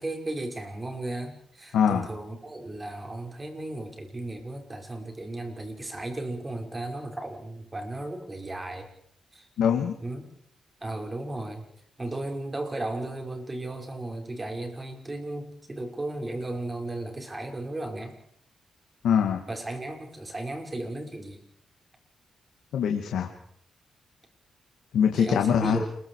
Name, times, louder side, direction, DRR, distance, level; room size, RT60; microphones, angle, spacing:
voice 1, 0.0-8.9 9.3-9.5 10.0-10.3 10.8-11.7 12.0-18.2 19.5-21.4 25.1-25.9, right 2 dB, 25° right, 4 dB, 5.7 m, -35 dB
voice 2, 1.7-2.1 9.6-9.9 19.0-19.4 22.7-23.3 24.9-25.8, left 7 dB, 90° left, 3 dB, 2.2 m, -23 dB
29.5 x 22.5 x 4.9 m, 0.65 s
cardioid pair, 90°, 0 cm